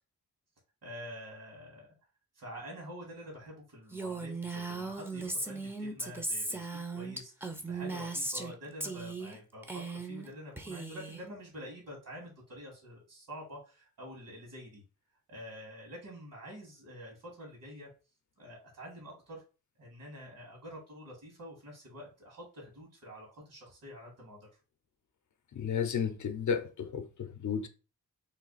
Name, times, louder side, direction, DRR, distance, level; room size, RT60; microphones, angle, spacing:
voice 1, 0.8-1.9 2.3-14.8 15.3-17.9 18.4-19.4 19.8-24.5, equal, 60° right, 1.8 m, -47 dB
Female speech woman speaking, 3.9-8.5 8.8-9.4 9.6-10.3 10.6-11.2, right 3 dB, 5° right, 0.6 m, -37 dB
voice 2, 25.5-27.7, left 7 dB, 55° left, 0.6 m, -33 dB
3.2 x 2.4 x 3.9 m
cardioid pair, 55°, 36 cm